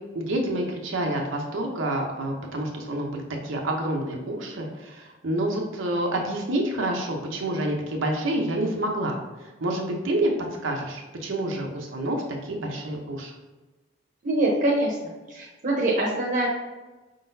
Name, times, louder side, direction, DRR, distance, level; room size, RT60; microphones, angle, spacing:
voice 1, 0.1-9.2 9.6-10.3 10.6-13.3, right 1 dB, 70° right, 1 dB, 0.7 m, -28 dB
voice 2, 14.2-14.9 15.3-16.5, right 1 dB, 40° right, -3 dB, 0.8 m, -24 dB
4.9 x 3.8 x 2.6 m, 1.2 s
head